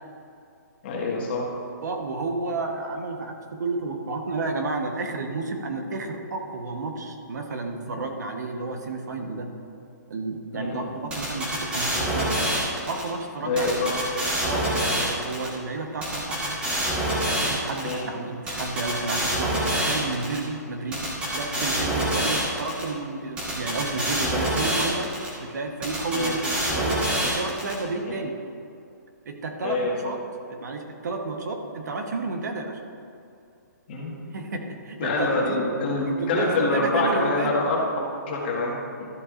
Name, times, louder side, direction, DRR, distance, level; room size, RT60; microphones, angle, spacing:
voice 1, 0.8-1.4 7.9-8.0 10.5-10.8 13.4-14.0 17.8-18.1 26.1-26.3 28.1-28.2 29.6-29.9 33.9-34.1 35.0-39.1, left 2 dB, 35° left, -3 dB, 1.7 m, -26 dB
voice 2, 1.8-9.5 10.1-12.4 12.9-13.8 14.4-16.6 17.4-21.0 21.3-28.3 29.2-29.8 30.0-30.2 30.5-32.8 34.3-35.6 36.1-37.5, right 3 dB, 60° right, 4 dB, 1.1 m, -31 dB
sound 1, 11.1-13.0 13.6-15.5 16.0-17.9 18.5-20.4 20.9-22.8 23.4-25.3 25.8-27.7, right 1 dB, 10° right, 1.3 m, -26 dB
13.0 x 7.9 x 2.5 m, 2.5 s
hypercardioid pair, 165°, 10 cm